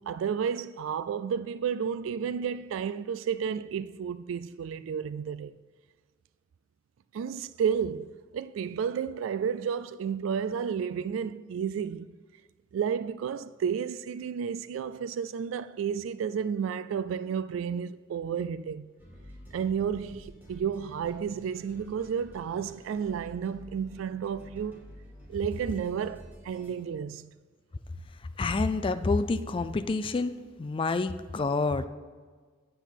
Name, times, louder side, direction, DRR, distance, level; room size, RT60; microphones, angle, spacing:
voice 1, 0.0-5.5 7.1-12.1 12.7-18.9 19.5-24.8 25.3-27.3, right 7 dB, 80° right, 0.3 m, -32 dB
sound 1, 19.0-26.7, equal, 10° right, 2.0 m, -50 dB
voice 2, 28.4-30.3 30.6-31.9, left 3 dB, 25° left, 0.3 m, -28 dB
8.9 x 7.9 x 4.6 m
head